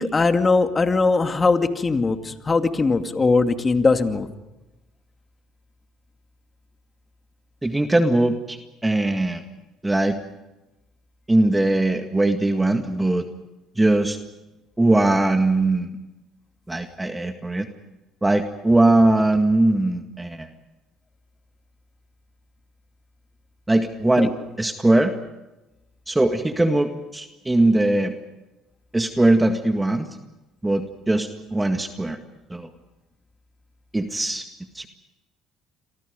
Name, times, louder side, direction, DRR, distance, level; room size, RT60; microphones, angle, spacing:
voice 1, 0.0-4.3 24.2-24.3, left 3 dB, 30° left, 7 dB, 2.4 m, -20 dB
voice 2, 7.6-9.4 9.8-10.2 11.3-13.2 13.8-14.2 14.8-15.9 16.7-17.7 18.2-20.5 23.7-24.3 24.6-25.1 26.1-28.1 28.9-30.1 30.6-32.2 32.5-32.7 33.9-34.5 34.7-34.9, right 2 dB, 15° right, 6 dB, 1.9 m, -20 dB
29.0 x 23.5 x 5.3 m, 1.0 s
hypercardioid pair, 70°, 0 cm